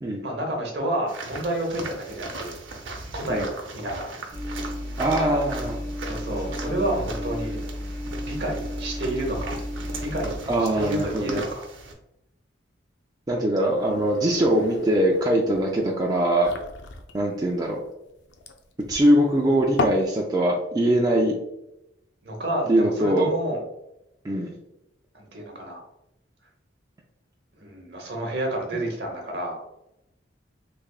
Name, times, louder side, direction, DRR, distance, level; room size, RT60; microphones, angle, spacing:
voice 1, 0.2-2.6 3.1-4.1 6.0-7.6 8.1-9.6 10.0-11.7 17.2-17.4 22.2-23.6 25.1-25.8 27.6-29.6, right 1 dB, 60° right, 1 dB, 1.0 m, -30 dB
sound 1, 1.1-11.9, right 3 dB, 80° right, 0.7 m, -39 dB
sound 2, 4.3-10.4, left 1 dB, 15° left, 0.7 m, -33 dB
voice 2, 5.0-5.8 6.5-6.8 10.5-11.5 13.3-16.5 17.1-17.8 18.9-21.4 22.7-23.3 24.2-24.5, right 1 dB, 20° right, -2 dB, 0.3 m, -22 dB
sound 3, 13.6-20.1, left 3 dB, 70° left, 0.4 m, -34 dB
3.5 x 3.3 x 2.3 m, 0.85 s
head